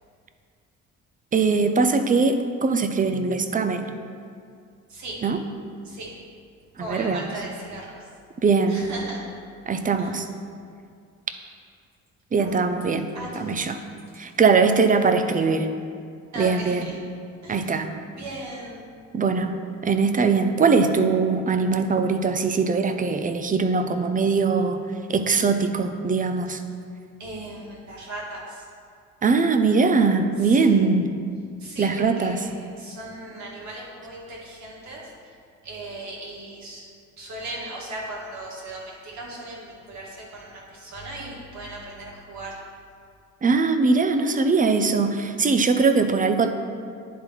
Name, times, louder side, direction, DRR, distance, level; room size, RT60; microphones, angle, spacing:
voice 1, 1.3-3.9 5.2-5.4 6.8-7.3 8.4-8.8 9.7-10.3 12.3-13.1 13.4-13.8 14.2-15.7 16.4-16.9 17.5-17.9 19.1-19.6 19.8-24.8 25.1-26.6 29.2-31.1 31.8-32.4 43.4-46.5, right 4 dB, 25° right, 8 dB, 0.5 m, -21 dB
voice 2, 6.8-8.1 8.7-9.3 10.0-10.1 12.4-12.6 13.1-13.6 16.3-17.0 17.4-17.7 18.2-18.9 27.2-28.6 30.4-30.9 31.6-35.3 35.6-36.9 37.2-42.5, right 1 dB, 65° right, -4 dB, 2.0 m, -37 dB
10.0 x 3.8 x 4.5 m, 2.3 s
cardioid pair, 90°, 30 cm